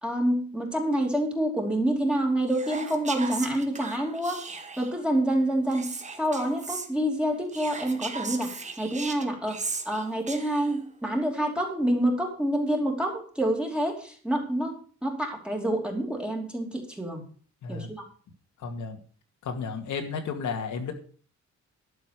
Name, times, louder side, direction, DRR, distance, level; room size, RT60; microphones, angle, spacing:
voice 1, 0.0-9.6 9.8-17.2 17.7-18.0, right 1 dB, 5° right, 1 dB, 2.8 m, -27 dB
Whispering, 2.5-5.0 5.7-6.9 7.5-10.8, right 4 dB, 25° right, 1.4 m, -37 dB
voice 2, 17.6-17.9 18.6-19.0 19.4-20.9, left 5 dB, 80° left, 4 dB, 2.4 m, -33 dB
12.0 x 7.0 x 6.6 m, 0.42 s
wide cardioid pair, 160°, 29 cm